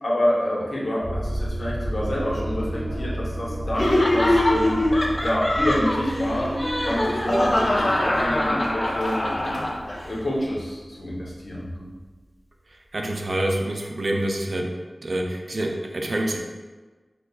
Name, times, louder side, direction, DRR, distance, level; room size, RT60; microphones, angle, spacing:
voice 1, 0.0-4.8 5.2-6.5 6.8-9.6 10.0-11.9, equal, 70° left, -5 dB, 0.8 m, -27 dB
sound 1, 1.0-11.8, right 1 dB, 20° right, 0.6 m, -33 dB
sound 2, 2.0-6.4, equal, 35° right, 1.3 m, -41 dB
Laughter, 3.7-10.1, left 1 dB, 35° left, 0.4 m, -23 dB
voice 2, 12.9-14.7 15.0-16.4, right 1 dB, 60° right, 1 dB, 0.4 m, -26 dB
5.4 x 2.3 x 2.3 m, 1.3 s
wide cardioid pair, 70°, 0 cm